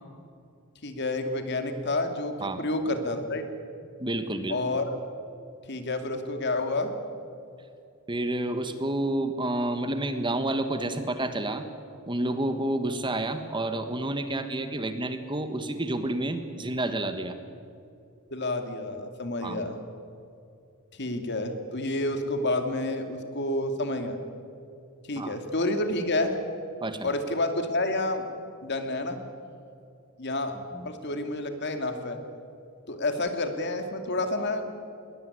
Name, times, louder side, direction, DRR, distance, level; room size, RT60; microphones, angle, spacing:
voice 1, 0.8-3.4 4.5-4.8 5.7-6.9 18.3-19.8 21.0-24.2 25.1-26.4 27.0-28.3 28.6-29.2 30.2-30.5 30.8-32.2 32.9-34.7, left 2 dB, 55° left, 6 dB, 2.5 m, -29 dB
voice 2, 4.0-4.6 8.1-11.6 12.1-17.3 19.4-19.7 25.2-25.4 26.8-27.1 30.7-30.9, right 1 dB, 20° right, 8 dB, 1.5 m, -29 dB
21.5 x 20.5 x 9.7 m, 2.5 s
head